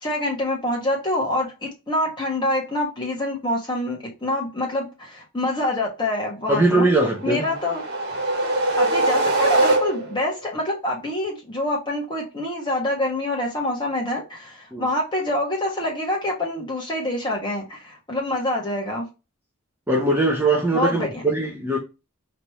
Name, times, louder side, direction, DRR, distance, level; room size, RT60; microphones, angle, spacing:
voice 1, 0.0-6.9 7.2-7.8 8.8-19.1 20.7-21.2, left 1 dB, 20° left, 1.5 m, -26 dB
voice 2, 6.5-7.5 14.7-14.8 19.9-21.8, right 2 dB, 10° right, 0.7 m, -21 dB
sound 1, 7.2-10.3, right 2 dB, 50° right, 1.5 m, -22 dB
4.1 x 3.3 x 3.0 m
head